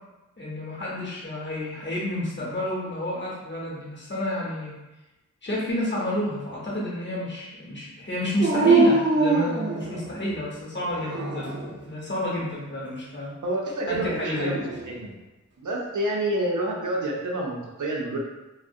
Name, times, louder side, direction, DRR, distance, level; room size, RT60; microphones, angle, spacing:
voice 1, 0.4-4.7 5.4-13.3 13.9-14.6, left 1 dB, 35° left, -6 dB, 0.8 m, -30 dB
Dog, 8.4-10.3 10.9-11.7 14.0-14.9, right 3 dB, 35° right, 0.6 m, -23 dB
voice 2, 13.4-15.2 15.6-18.2, right 1 dB, 80° right, -2 dB, 0.5 m, -28 dB
2.4 x 2.0 x 2.6 m, 1.0 s
wide cardioid pair, 70°, 30 cm